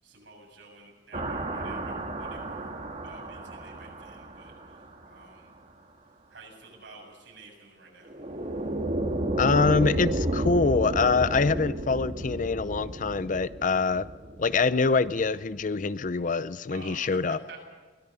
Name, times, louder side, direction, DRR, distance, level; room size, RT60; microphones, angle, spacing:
voice 1, 0.0-2.8 3.0-5.5 6.3-8.2 13.5-13.7 16.7-17.6, right 3 dB, 80° right, 7.5 m, -50 dB
sound 1, 1.1-5.0 8.1-15.2, right 1 dB, 40° right, 1.8 m, -32 dB
voice 2, 9.4-14.1 14.4-17.4, left 4 dB, 45° left, 0.5 m, -25 dB
23.0 x 18.0 x 6.8 m
head